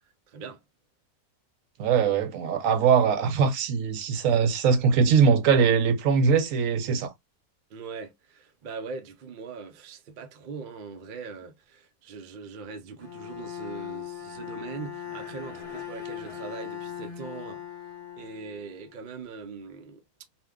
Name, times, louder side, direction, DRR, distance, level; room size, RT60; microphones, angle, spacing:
voice 1, 0.3-0.6 7.7-17.6 18.2-20.0, right 5 dB, 90° right, 0.4 m, -41 dB
voice 2, 1.8-7.1, right 6 dB, 70° right, 0.9 m, -22 dB
Bowed string instrument, 13.0-19.0, left 9 dB, 35° left, 0.7 m, -39 dB
2.7 x 2.1 x 3.5 m
omnidirectional pair, 1.6 m